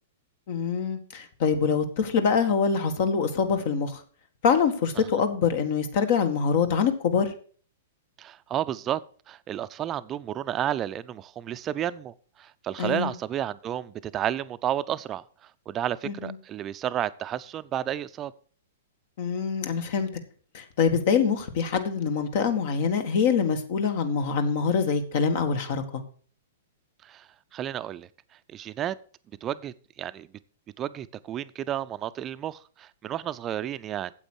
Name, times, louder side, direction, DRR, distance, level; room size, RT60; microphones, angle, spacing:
voice 1, 0.5-4.0 4.4-7.3 12.8-13.1 16.1-16.3 19.2-20.1 20.5-26.0, left 6 dB, 55° left, 1.8 m, -25 dB
voice 2, 8.2-9.0 9.3-15.2 15.7-18.3 27.0-28.1 28.5-29.0 29.4-30.3 30.8-34.3, right 11 dB, 30° right, 0.6 m, -32 dB
8.9 x 7.8 x 6.4 m
hypercardioid pair, 115°, 0 cm